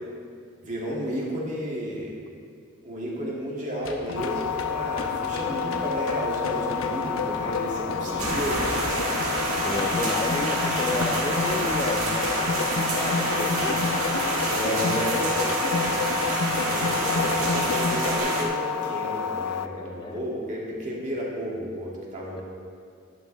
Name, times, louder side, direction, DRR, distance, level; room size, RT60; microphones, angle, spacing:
voice 1, 0.6-2.1 2.8-9.0 14.5-15.2 16.5-22.4, equal, 35° right, -5 dB, 2.3 m, -32 dB
sound 1, 3.8-18.2, left 2 dB, 65° left, 1.0 m, -31 dB
sound 2, 4.1-19.7, left 8 dB, 85° left, 0.5 m, -31 dB
sound 3, 8.2-18.4, right 2 dB, 80° right, 1.9 m, -28 dB
voice 2, 9.6-15.8 20.0-20.2, left 2 dB, 20° left, 4 dB, 0.4 m, -33 dB
12.0 x 11.0 x 3.4 m, 2.2 s
head